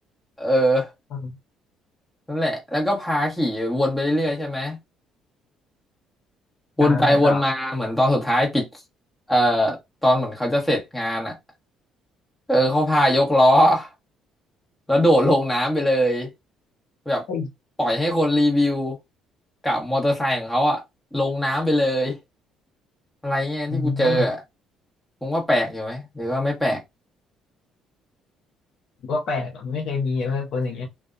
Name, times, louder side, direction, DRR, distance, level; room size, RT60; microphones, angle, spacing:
voice 1, 0.4-0.9 2.3-4.8 6.8-8.6 9.3-11.3 12.5-13.9 14.9-16.3 17.1-17.2 17.8-19.0 19.6-20.8 21.1-22.2 23.2-24.4 25.2-26.8, equal, 10° left, 1.1 m, -21 dB
voice 2, 6.8-7.4 17.3-17.5 23.7-24.3 29.1-30.9, left 4 dB, 65° left, 0.7 m, -26 dB
2.6 x 2.2 x 2.4 m
cardioid pair, 110°, 0 cm